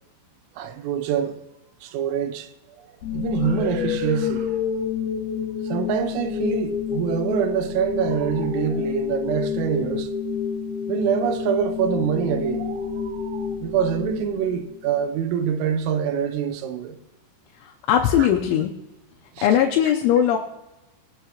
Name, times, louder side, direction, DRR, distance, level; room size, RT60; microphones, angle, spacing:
voice 1, 0.6-1.4 1.8-2.5 3.1-4.6 5.7-10.1 10.9-17.0 19.4-19.5, right 8 dB, 90° right, 3.5 m, -25 dB
sound 1, 3.0-15.1, left 7 dB, 55° left, 3.4 m, -28 dB
voice 2, 17.6-18.7 19.4-20.4, left 10 dB, 80° left, 3.0 m, -19 dB
20.5 x 11.5 x 2.9 m
omnidirectional pair, 5.8 m